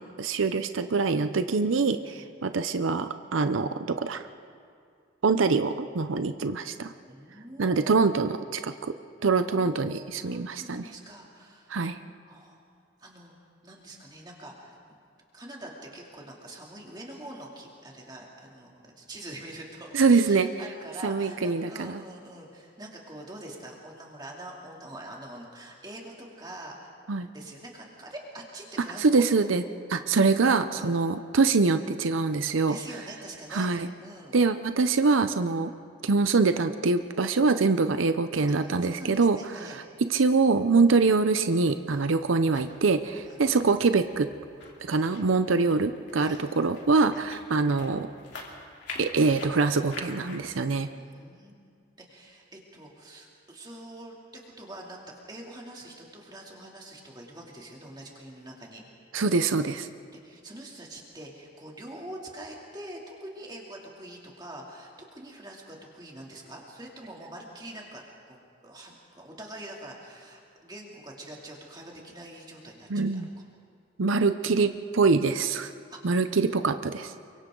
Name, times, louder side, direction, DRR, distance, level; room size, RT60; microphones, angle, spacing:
voice 1, 0.0-4.3 5.2-6.9 7.6-8.9 9.2-10.9 11.7-12.0 19.9-20.5 21.0-22.0 27.1-27.3 29.0-29.6 29.9-32.8 33.5-33.9 34.3-35.7 36.0-44.3 44.8-48.1 49.0-50.9 59.1-59.9 72.9-73.3 74.0-75.7 76.0-77.1, right 4 dB, 90° right, 10 dB, 0.7 m, -24 dB
voice 2, 7.1-8.1 9.3-11.8 12.3-12.6 13.0-13.3 13.6-15.0 15.3-26.9 27.3-29.2 30.7-30.9 32.7-33.7 34.0-34.3 35.4-35.6 38.6-39.8 40.7-40.9 41.9-42.1 43.3-43.4 44.9-45.3 46.2-46.4 47.1-47.2 50.9-51.5 52.1-58.8 60.1-68.4 68.6-73.2 75.9-76.2, right 1 dB, 20° right, -2 dB, 2.8 m, -44 dB
sound 1, 41.1-50.4, left 3 dB, 65° left, 3.3 m, -46 dB
28.5 x 24.0 x 3.9 m, 2.2 s
head